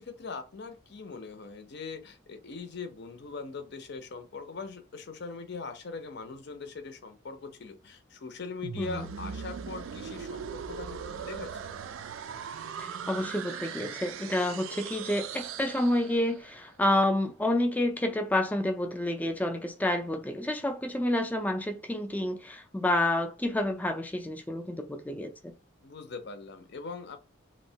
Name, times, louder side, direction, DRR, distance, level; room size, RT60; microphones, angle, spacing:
voice 1, 0.0-11.6 25.8-27.2, left 4 dB, 55° left, 0.5 m, -41 dB
sound 1, 8.6-16.5, right 7 dB, 70° right, 0.3 m, -39 dB
voice 2, 8.8-9.1 12.8-25.5, left 1 dB, 10° left, 0.3 m, -29 dB
3.0 x 2.1 x 2.7 m
head